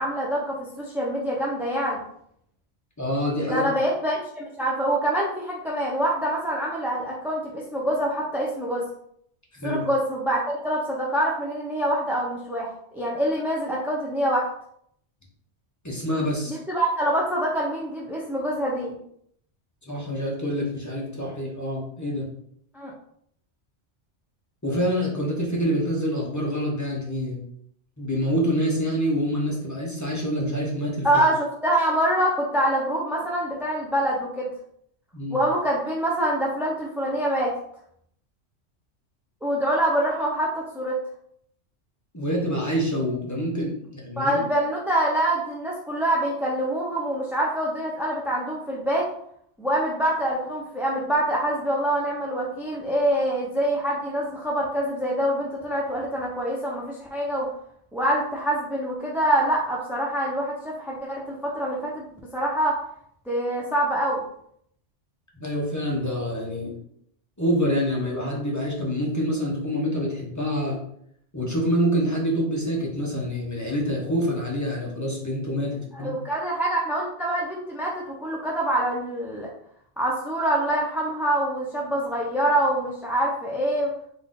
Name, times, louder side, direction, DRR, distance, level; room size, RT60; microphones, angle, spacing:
voice 1, 0.0-2.0 3.5-8.8 9.6-14.5 16.5-19.0 22.7-22.9 31.0-34.5 35.3-37.5 39.4-41.0 44.2-49.1 49.6-57.5 57.9-62.0 62.3-62.8 63.3-64.2 75.9-79.5 80.0-83.9, right 1 dB, 5° right, -4 dB, 0.4 m, -25 dB
voice 2, 3.0-3.6 9.5-9.8 15.8-16.6 19.8-22.3 24.6-27.4 28.0-31.1 35.1-35.4 42.1-44.4 65.3-66.8 67.4-70.8 71.3-76.1, equal, 15° left, -3 dB, 0.8 m, -26 dB
4.0 x 2.6 x 3.7 m, 0.69 s
omnidirectional pair, 1.2 m